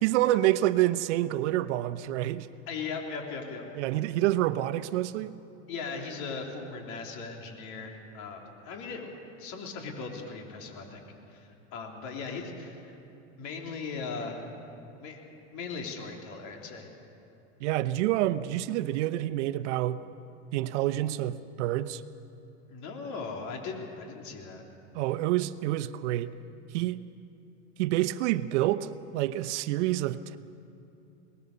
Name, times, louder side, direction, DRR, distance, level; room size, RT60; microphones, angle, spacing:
voice 1, 0.0-2.5 3.7-5.3 17.6-20.0 20.5-22.0 24.9-26.3 26.7-27.0 27.8-30.4, right 14 dB, 70° right, 14 dB, 0.9 m, -28 dB
voice 2, 2.7-3.7 5.7-9.1 9.4-11.0 11.3-13.0 13.4-14.5 15.0-16.9 22.7-24.6, left 4 dB, 55° left, 1 dB, 3.7 m, -38 dB
22.5 x 19.5 x 6.9 m, 2.8 s
supercardioid pair, 130°, 36 cm